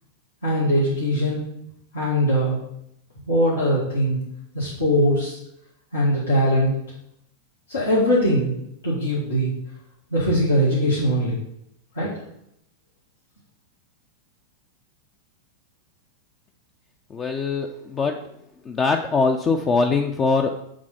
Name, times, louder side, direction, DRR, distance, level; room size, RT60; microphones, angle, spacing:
voice 1, 0.4-1.4 1.9-2.6 3.3-4.2 4.5-5.4 5.9-6.7 7.7-8.5 8.8-9.5 10.1-11.4 12.0-12.1, equal, 75° left, -8 dB, 2.0 m, -21 dB
voice 2, 17.1-18.4 18.6-20.5, left 4 dB, 25° left, 5 dB, 0.5 m, -22 dB
7.4 x 4.0 x 5.7 m, 0.76 s
figure-of-eight pair, 90°, 0 cm